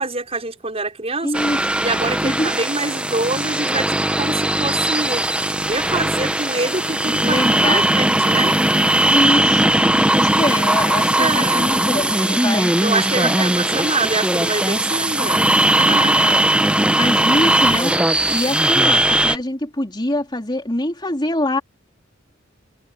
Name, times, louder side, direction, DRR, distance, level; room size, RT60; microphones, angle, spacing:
voice 1, 0.0-1.4 1.8-5.2 5.6-8.6 11.2-11.7 12.8-15.4 15.8-16.2, right 3 dB, 30° right, 5.9 m, -25 dB
voice 2, 1.2-1.6 2.2-2.5 7.1-7.8 9.1-9.7 10.0-12.7 13.2-13.4 16.1-16.4 17.0-17.9 18.3-21.6, left 1 dB, 20° left, 3.9 m, -24 dB
sound 1, 1.3-19.4, right 1 dB, 5° right, 1.0 m, -18 dB
head